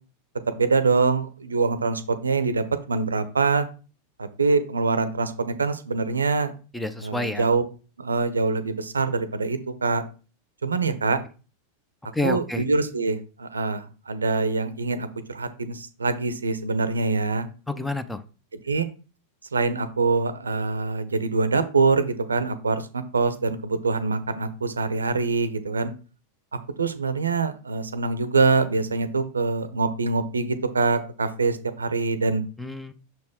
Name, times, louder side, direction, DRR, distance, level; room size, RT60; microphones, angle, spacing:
voice 1, 0.5-3.6 4.2-6.5 7.0-7.6 8.0-10.0 10.6-11.2 12.2-17.5 18.5-18.9 19.5-25.9 26.8-32.4, right 4 dB, 75° right, 13 dB, 0.6 m, -24 dB
voice 2, 6.7-7.4 12.1-12.6 17.7-18.2 32.6-32.9, left 2 dB, 5° left, 11 dB, 0.6 m, -29 dB
6.2 x 4.2 x 3.6 m, 0.35 s
figure-of-eight pair, 90°, 0 cm